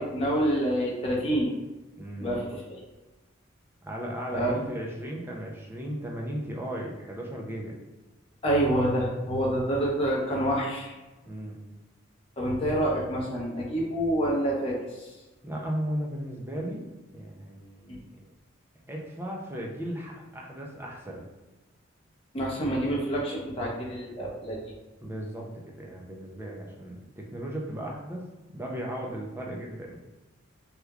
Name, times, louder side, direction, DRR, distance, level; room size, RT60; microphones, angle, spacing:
voice 1, 0.0-1.5 2.2-2.8 4.3-4.5 8.4-10.9 12.4-15.1 22.3-24.7, right 1 dB, 25° left, -4 dB, 0.8 m, -27 dB
voice 2, 2.0-2.5 3.8-7.8 11.2-11.6 15.4-16.9 17.1-18.0 18.9-21.2 25.0-30.0, equal, 10° right, -2 dB, 0.5 m, -36 dB
3.4 x 2.9 x 2.3 m, 1.1 s
head